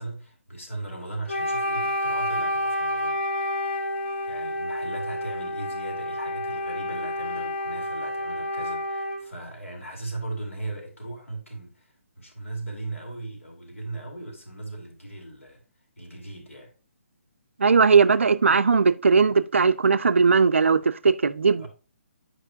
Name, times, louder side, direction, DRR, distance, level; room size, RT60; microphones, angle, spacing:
voice 1, 0.0-3.2 3.6-3.9 4.3-15.6 16.0-16.7 21.6-21.7, right 2 dB, 75° left, 2.6 m, -38 dB
Wind instrument woodwind instrument, 1.3-9.3, left 1 dB, 55° left, 2.2 m, -29 dB
voice 2, 17.6-21.7, right 5 dB, 65° right, 0.4 m, -19 dB
8.6 x 4.9 x 2.6 m
figure-of-eight pair, 140°, 7 cm